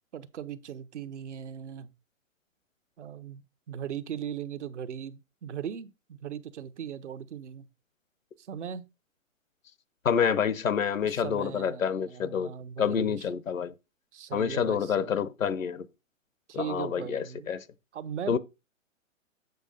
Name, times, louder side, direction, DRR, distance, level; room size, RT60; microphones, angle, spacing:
voice 1, 0.1-1.9 3.0-7.7 8.4-8.8 11.0-13.2 14.1-15.1 16.5-17.5 17.9-18.4, right 9 dB, 60° right, 1.0 m, -39 dB
voice 2, 10.0-12.5 12.8-13.7 14.3-15.9 16.5-17.6 18.3-18.4, left 7 dB, 80° left, 0.9 m, -28 dB
8.1 x 5.0 x 5.2 m
figure-of-eight pair, 125°, 40 cm